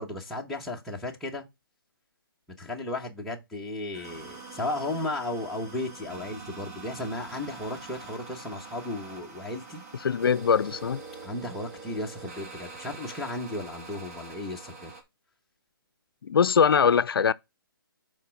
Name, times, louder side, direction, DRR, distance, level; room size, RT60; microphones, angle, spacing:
voice 1, 0.0-1.5 2.6-9.8 11.2-14.9, left 2 dB, ahead, 1.0 m, -35 dB
sound 1, 3.9-15.0, right 4 dB, 45° right, 2.1 m, -44 dB
voice 2, 10.0-11.0 16.2-17.3, left 7 dB, 80° left, 0.4 m, -22 dB
5.7 x 4.3 x 5.8 m
hypercardioid pair, 160°, 12 cm